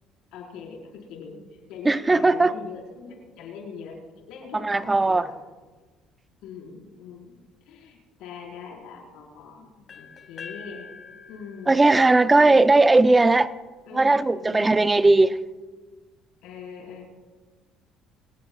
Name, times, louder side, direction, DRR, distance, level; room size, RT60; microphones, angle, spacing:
voice 1, 0.3-4.0 4.3-5.3 6.4-10.9 11.3-11.9 12.4-12.7 13.9-15.3 16.4-17.1, left 6 dB, 75° left, 5.1 m, -42 dB
voice 2, 1.8-2.5 4.5-5.2 11.7-13.5 13.9-15.3, right 2 dB, 20° right, 0.7 m, -18 dB
sound 1, 9.9-13.8, left 6 dB, 45° left, 2.6 m, -46 dB
26.5 x 17.5 x 2.5 m
supercardioid pair, 75°, 0 cm